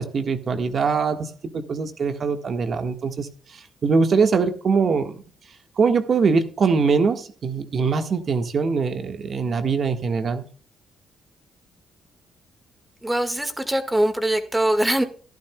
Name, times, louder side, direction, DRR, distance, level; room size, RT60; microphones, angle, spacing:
voice 1, 0.0-5.2 5.8-10.5, right 5 dB, 50° right, 7 dB, 1.5 m, -22 dB
voice 2, 13.0-15.0, right 1 dB, 10° right, 8 dB, 1.7 m, -22 dB
14.5 x 11.5 x 2.3 m, 0.40 s
cardioid pair, 90°, 0 cm